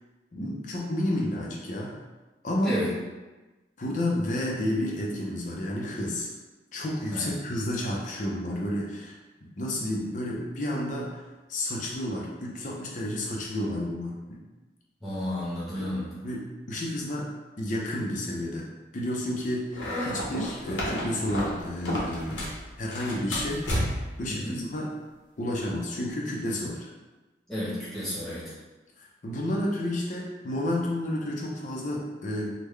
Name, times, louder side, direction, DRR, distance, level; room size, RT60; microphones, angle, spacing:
voice 1, 0.3-2.0 2.4-2.8 3.8-6.3 6.7-9.2 9.4-11.2 11.5-14.4 15.8-15.9 16.2-17.3 17.6-18.7 18.9-22.5 22.8-23.8 24.2-24.9 25.4-26.9 29.0-32.5, left 1 dB, 45° left, -2 dB, 0.5 m, -31 dB
voice 2, 15.0-16.1 24.3-24.6 27.5-28.5, left 1 dB, ahead, -10 dB, 1.0 m, -32 dB
sound 1, 19.7-22.6 22.9-24.2, equal, 85° left, 0.9 m, -31 dB
3.6 x 2.1 x 3.2 m, 1.2 s
head